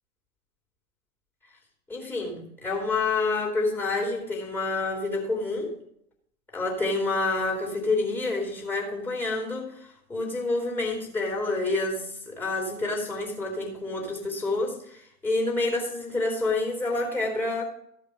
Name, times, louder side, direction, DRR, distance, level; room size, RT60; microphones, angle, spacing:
voice 1, 1.9-5.7 6.5-17.6, left 3 dB, 5° left, 0 dB, 3.1 m, -28 dB
15.0 x 5.3 x 6.5 m, 0.72 s
figure-of-eight pair, 105°, 44 cm